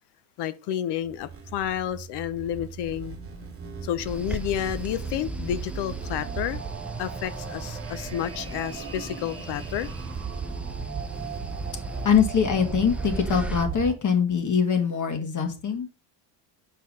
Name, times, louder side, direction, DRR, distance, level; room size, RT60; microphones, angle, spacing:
voice 1, 0.4-3.2 3.8-6.6 7.0-9.9, left 10 dB, 55° left, 0.8 m, -30 dB
sound 1, 1.0-13.9, right 5 dB, 25° right, 1.8 m, -36 dB
sound 2, 4.1-13.6, right 1 dB, 5° right, 0.5 m, -39 dB
voice 2, 12.0-15.9, left 7 dB, 40° left, 1.8 m, -23 dB
5.8 x 4.7 x 5.4 m
supercardioid pair, 95°, 48 cm